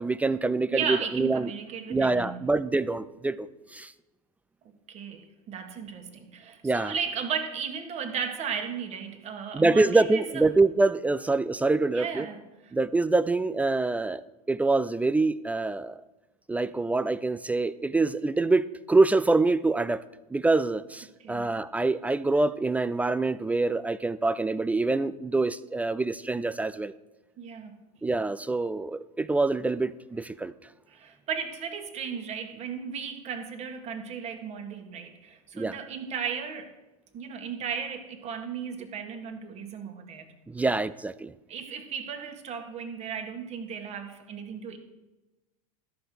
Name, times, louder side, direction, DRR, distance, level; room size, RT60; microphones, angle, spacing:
voice 1, 0.0-1.5 1.9-3.9 6.6-6.9 9.5-12.3 12.7-14.2 14.5-16.0 16.5-20.0 20.3-26.9 28.0-30.5 35.6-35.7 40.5-41.3, right 3 dB, 10° right, 0.3 m, -25 dB
voice 2, 0.7-2.4 4.9-10.4 11.9-12.4 21.2-21.5 27.4-27.8 30.9-36.8 37.1-40.3 41.5-44.8, right 6 dB, 35° right, 1.8 m, -35 dB
13.0 x 5.8 x 6.5 m
hypercardioid pair, 95°, 19 cm